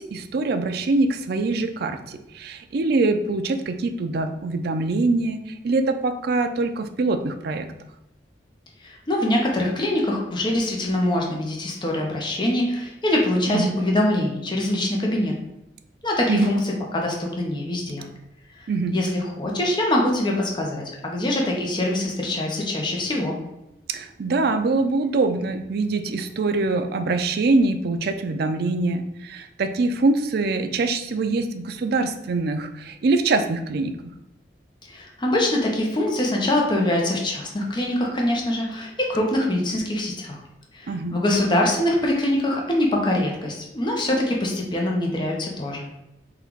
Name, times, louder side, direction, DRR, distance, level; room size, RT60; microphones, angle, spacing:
voice 1, 0.0-7.7 13.5-13.8 16.3-16.5 18.7-19.0 23.9-33.9 40.9-41.2, right 3 dB, 60° right, 8 dB, 0.4 m, -24 dB
voice 2, 8.8-15.3 16.0-18.0 18.6-23.4 34.8-40.4 40.7-45.9, left 1 dB, 25° left, -1 dB, 0.7 m, -24 dB
3.8 x 2.4 x 4.4 m, 0.88 s
head